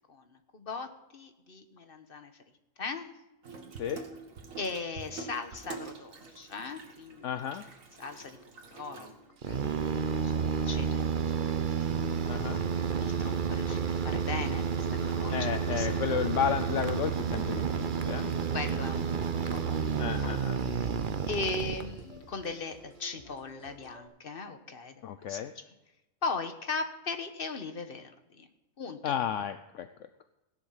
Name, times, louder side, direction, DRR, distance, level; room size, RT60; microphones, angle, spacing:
voice 1, 0.1-2.4 2.8-3.1 4.6-7.5 8.0-9.1 9.5-16.0 18.5-25.7 26.2-28.5 28.8-29.2, left 4 dB, 45° left, 7 dB, 1.3 m, -39 dB
Water tap faucet / Sink (filling or washing), 3.4-9.6, right 4 dB, 80° right, 1.9 m, -46 dB
voice 2, 7.2-7.6 12.3-12.6 15.3-18.3 20.0-20.6 25.0-25.5 29.0-29.9, left 9 dB, 70° left, 9 dB, 1.0 m, -32 dB
sound 1, 9.4-22.3, right 6 dB, 45° right, 0.9 m, -30 dB
sound 2, 16.7-24.1, equal, ahead, 4.5 m, -55 dB
16.5 x 10.5 x 5.7 m, 0.97 s
omnidirectional pair, 1.4 m